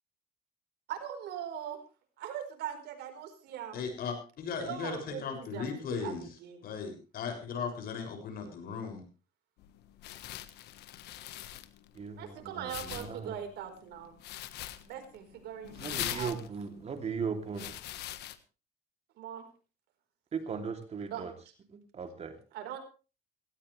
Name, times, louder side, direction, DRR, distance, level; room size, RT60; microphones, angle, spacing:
voice 1, 0.9-1.8 2.2-3.8 4.6-6.1 6.4-6.7 12.1-14.2 14.8-16.4 19.2-19.5 21.1-21.3 22.5-22.8, right 9 dB, 80° right, 6 dB, 4.5 m, -41 dB
voice 2, 3.7-6.3 6.6-9.0, left 5 dB, 65° left, 5 dB, 6.9 m, -37 dB
sound 1, 9.6-18.4, left 13 dB, 80° left, 1.5 m, -43 dB
voice 3, 11.9-13.4 15.7-17.8 20.3-21.3 21.7-22.4, right 5 dB, 40° right, 6 dB, 3.0 m, -38 dB
18.0 x 17.0 x 3.4 m, 0.34 s
cardioid pair, 110°, 17 cm